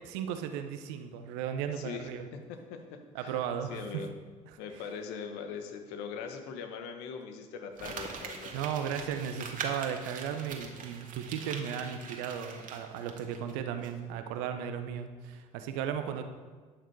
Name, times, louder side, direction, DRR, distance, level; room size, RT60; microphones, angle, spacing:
voice 1, 0.1-2.3 3.1-4.0 8.5-16.2, right 8 dB, 75° right, 8 dB, 1.0 m, -35 dB
voice 2, 1.7-2.1 2.5-3.4 3.7-4.1 4.6-8.5, left 6 dB, 70° left, 5 dB, 1.3 m, -41 dB
Crumpling crinkling, 7.8-13.5 13.8-13.9, right 5 dB, 50° right, 1.7 m, -42 dB
11.5 x 8.2 x 4.7 m, 1.5 s
hypercardioid pair, 60°, 17 cm